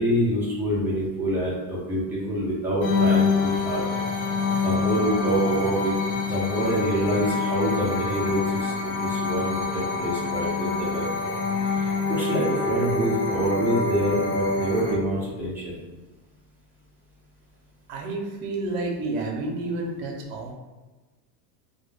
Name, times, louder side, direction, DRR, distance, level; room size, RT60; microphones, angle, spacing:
voice 1, 0.0-3.9 4.6-5.9 6.2-11.4 11.7-15.8, right 1 dB, 5° right, -8 dB, 0.4 m, -26 dB
sound 1, 2.8-14.9, left 4 dB, 45° left, 0.6 m, -26 dB
voice 2, 17.9-20.5, right 2 dB, 50° right, 2 dB, 0.6 m, -30 dB
2.2 x 2.2 x 3.1 m, 1.2 s
supercardioid pair, 150°, 48 cm